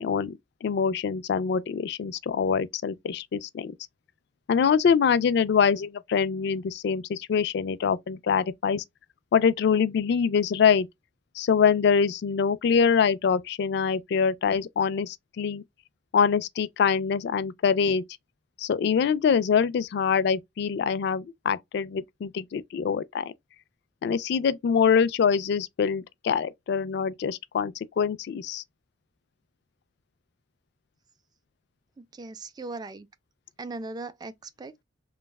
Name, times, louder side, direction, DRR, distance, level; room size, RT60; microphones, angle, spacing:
voice 1, 0.0-3.7 4.5-8.8 9.3-10.9 11.4-15.6 16.1-18.0 18.6-23.3 24.0-28.6, left 6 dB, 65° left, 0.3 m, -24 dB
voice 2, 32.0-33.1 33.6-34.8, right 3 dB, 20° right, 0.3 m, -39 dB
3.1 x 2.2 x 2.2 m
head